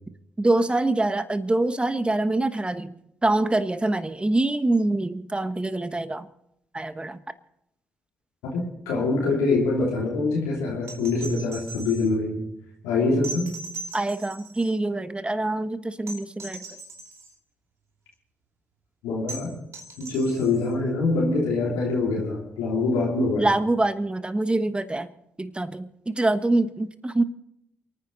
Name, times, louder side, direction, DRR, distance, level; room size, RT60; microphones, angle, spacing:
voice 1, 0.4-6.3 6.7-7.2 13.9-16.7 23.4-25.1 25.4-27.2, right 2 dB, 20° right, 12 dB, 1.2 m, -25 dB
voice 2, 8.5-12.4 12.8-13.5 19.0-19.6 20.0-23.5, left 3 dB, 85° left, -4 dB, 3.1 m, -24 dB
sound 1, 10.8-12.1 13.2-14.8 16.1-17.3 19.3-20.7 22.5-22.6, right 3 dB, 60° right, 2.6 m, -40 dB
28.5 x 9.6 x 4.1 m, 0.80 s
hypercardioid pair, 45°, 5 cm